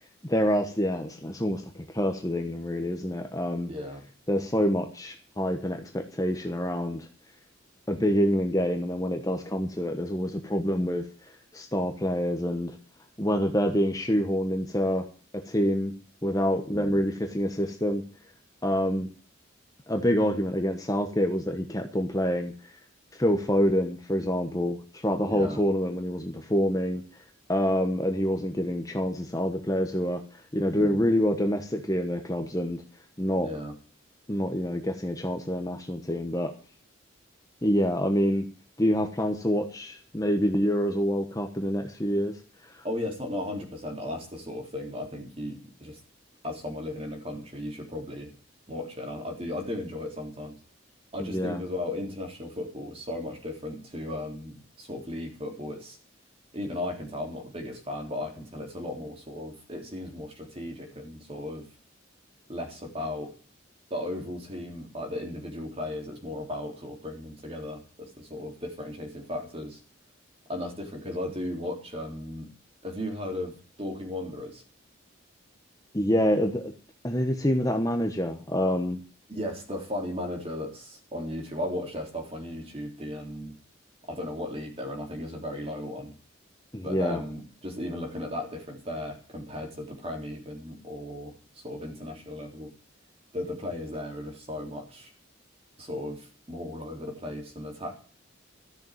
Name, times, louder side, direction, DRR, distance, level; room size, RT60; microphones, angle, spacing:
voice 1, 0.2-3.7 4.3-7.1 7.9-11.0 11.5-12.8 13.2-15.1 15.5-15.9 16.2-18.0 18.6-19.1 19.9-22.5 23.1-27.0 27.5-32.8 33.2-33.5 34.3-36.5 37.6-38.5 38.8-42.3 42.6-42.8 51.2-51.6 75.9-76.7 77.0-79.0 86.7-87.2, equal, 15° left, 5 dB, 1.1 m, -26 dB
voice 2, 3.7-4.0 16.7-17.1 25.3-25.6 30.8-31.0 33.4-33.7 42.8-46.0 46.4-48.3 48.7-50.6 51.1-56.0 56.5-61.7 62.5-63.3 63.9-69.8 70.5-72.5 72.8-74.6 79.3-83.6 84.1-86.1 86.8-92.7 93.3-95.1 95.8-98.0, left 1 dB, 30° right, 2 dB, 3.6 m, -36 dB
13.5 x 6.9 x 9.1 m, 0.40 s
head